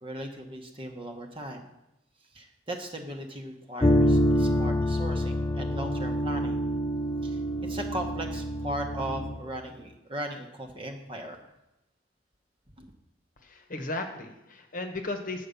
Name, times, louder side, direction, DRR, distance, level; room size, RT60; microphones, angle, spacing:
voice 1, 0.0-1.6 2.3-6.6 7.2-11.5 12.8-12.9, right 1 dB, 30° right, 3 dB, 1.0 m, -38 dB
sound 1, 3.8-9.4, equal, 20° left, 0.3 m, -26 dB
voice 2, 13.4-15.5, left 2 dB, 45° left, 5 dB, 1.1 m, -35 dB
8.5 x 5.2 x 6.9 m, 0.90 s
head